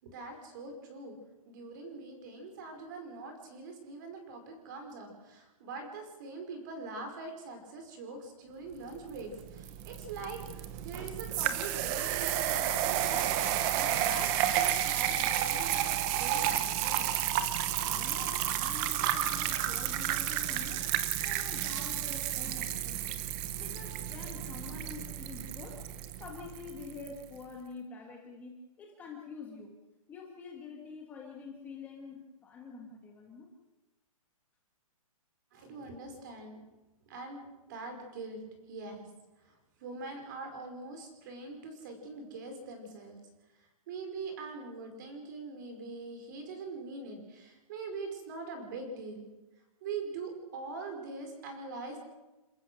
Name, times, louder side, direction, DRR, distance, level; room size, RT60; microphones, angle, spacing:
voice 1, 0.0-1.2 1.5-13.4 13.8-17.1 18.0-18.1 35.5-36.6 37.1-38.4 38.7-39.1 39.4-43.2 43.6-49.3 49.8-52.0, right 3 dB, 30° right, 5 dB, 5.1 m, -43 dB
sound 1, 7.9-9.7 10.1-11.7 11.9-14.1 14.5-14.6 15.1-15.6, right 5 dB, 65° right, 3.1 m, -51 dB
sound 2, 9.1-27.1, right 11 dB, 15° right, 0.8 m, -32 dB
voice 2, 17.9-25.9 26.2-29.7 30.1-33.5, left 5 dB, 10° left, 0 dB, 1.6 m, -47 dB
28.5 x 15.0 x 6.4 m, 1.1 s
hypercardioid pair, 170°, 18 cm